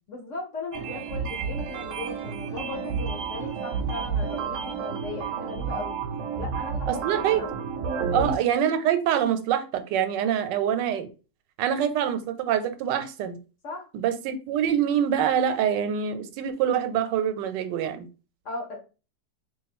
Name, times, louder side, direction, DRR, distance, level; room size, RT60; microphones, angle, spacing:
voice 1, 0.1-6.0 6.4-7.5 8.1-8.4 13.6-13.9 18.4-18.8, left 3 dB, 60° left, 0.9 m, -37 dB
sound 1, 0.7-8.4, right 6 dB, 70° right, 0.8 m, -31 dB
voice 2, 7.0-7.4 8.1-11.1 11.6-13.4 13.9-18.1, right 9 dB, 85° right, 1.2 m, -25 dB
2.8 x 2.5 x 4.1 m
omnidirectional pair, 1.9 m